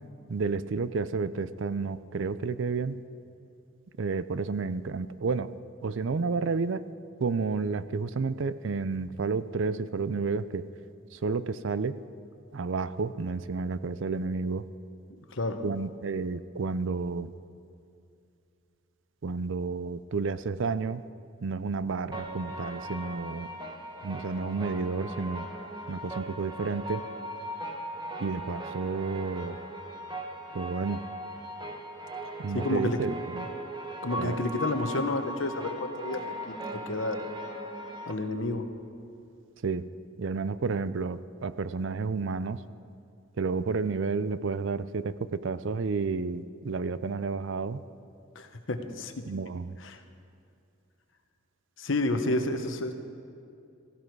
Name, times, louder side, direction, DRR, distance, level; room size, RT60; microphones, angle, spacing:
voice 1, 0.3-3.0 4.0-5.5 5.8-6.9 7.2-10.7 11.1-12.0 12.5-14.7 15.6-17.3 19.2-21.0 21.4-23.5 24.0-25.5 25.9-27.0 28.2-29.6 30.5-31.0 32.4-33.5 34.2-34.4 39.6-39.9 40.2-42.6 43.4-47.8 49.3-49.7, right 4 dB, 65° right, 15 dB, 0.5 m, -31 dB
voice 2, 15.1-15.6 32.5-33.0 34.0-37.3 38.1-38.7 48.3-49.2 49.8-50.0 51.8-52.9, left 2 dB, 70° left, 7 dB, 1.1 m, -30 dB
sound 1, 22.1-38.1, right 1 dB, 20° right, 1.1 m, -39 dB
16.5 x 15.5 x 4.7 m, 2.5 s
head